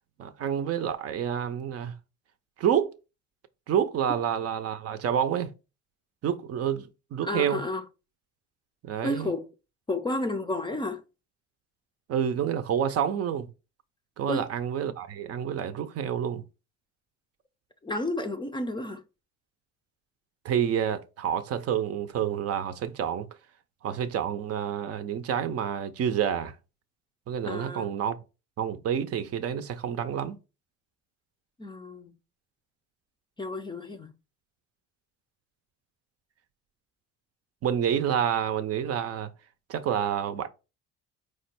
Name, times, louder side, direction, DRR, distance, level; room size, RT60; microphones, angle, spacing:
voice 1, 0.2-1.9 2.6-2.9 3.7-5.5 6.2-7.6 8.8-9.3 12.1-13.5 14.2-16.4 20.4-23.3 23.8-26.6 27.3-28.2 28.6-30.4 37.6-39.3 39.7-40.5, right 9 dB, 50° right, 0.5 m, -28 dB
voice 2, 7.2-7.8 9.0-9.5 9.9-11.0 14.3-14.5 17.8-19.0 27.4-27.9 31.6-32.1 33.4-34.1, left 2 dB, 15° left, 0.4 m, -31 dB
4.7 x 2.2 x 4.3 m
cardioid pair, 100°, 32 cm